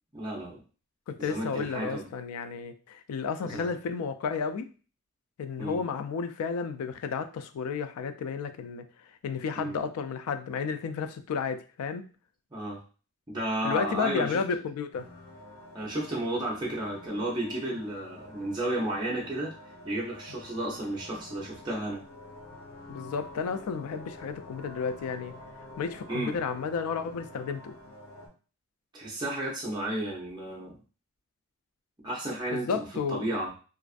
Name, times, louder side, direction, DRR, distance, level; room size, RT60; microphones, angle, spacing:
voice 1, 0.1-0.6 1.2-2.1 3.4-3.7 5.6-5.8 9.5-9.7 12.5-12.8 13.3-14.4 15.7-19.5 19.8-22.0 26.1-26.3 28.9-30.8 32.0-33.5, right 1 dB, 20° right, -4 dB, 0.5 m, -33 dB
voice 2, 1.1-4.7 5.4-8.9 9.2-12.1 13.6-15.1 22.9-25.4 25.8-27.8 32.5-33.3, left 5 dB, 85° left, 10 dB, 0.3 m, -32 dB
sound 1, 14.9-28.3, left 1 dB, 65° left, 0.7 m, -48 dB
2.4 x 2.3 x 2.4 m, 0.37 s
head